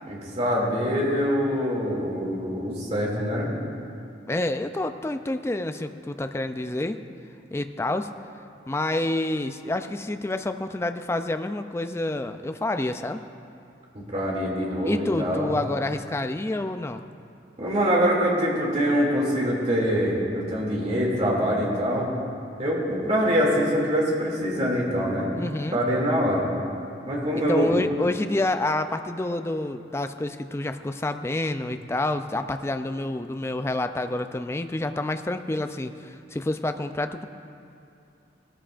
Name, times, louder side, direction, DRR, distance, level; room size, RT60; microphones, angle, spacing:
voice 1, 0.1-3.5 13.9-15.5 17.6-22.1 22.6-25.3 25.7-26.5 27.0-27.7, equal, 40° right, -4 dB, 2.6 m, -24 dB
voice 2, 4.3-7.0 7.5-8.1 8.7-13.2 14.8-17.0 25.4-25.8 27.5-37.3, left 2 dB, 15° left, 8 dB, 0.4 m, -28 dB
18.0 x 13.5 x 2.5 m, 2.6 s
head